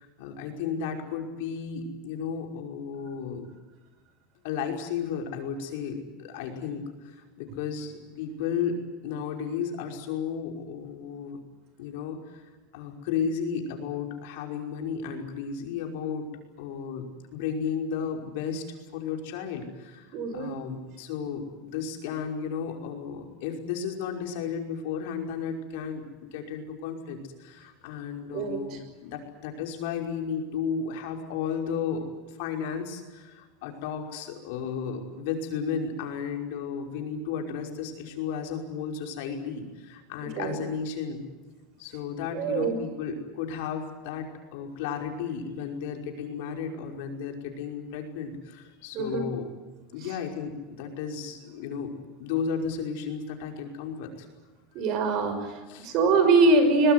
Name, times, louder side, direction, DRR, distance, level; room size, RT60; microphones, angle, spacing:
voice 1, 0.0-3.5 4.4-11.4 11.8-16.3 16.6-18.6 18.9-41.2 41.8-49.5 49.9-51.9 52.2-54.3 55.7-55.9, left 6 dB, 65° left, 3 dB, 5.5 m, -34 dB
voice 2, 20.1-20.5 28.3-28.8 40.4-40.6 42.3-42.8 48.9-49.3 54.7-55.5 55.8-56.9, right 3 dB, 40° right, 8 dB, 5.8 m, -23 dB
22.5 x 21.0 x 9.7 m, 1.2 s
supercardioid pair, 165°, 0 cm